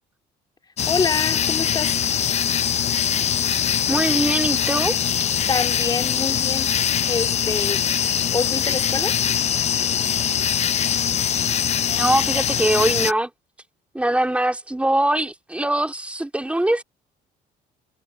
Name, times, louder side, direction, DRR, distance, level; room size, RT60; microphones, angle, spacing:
sound 1, 0.8-13.1, left 9 dB, 40° left, 0.6 m, -22 dB
voice 1, 0.9-2.0 5.5-6.7 7.1-7.9 8.3-9.2, left 4 dB, 25° left, 2.3 m, -26 dB
voice 2, 3.9-5.0 11.9-13.3 13.9-16.8, right 1 dB, 5° right, 3.0 m, -22 dB
cardioid pair, 110°, 17 cm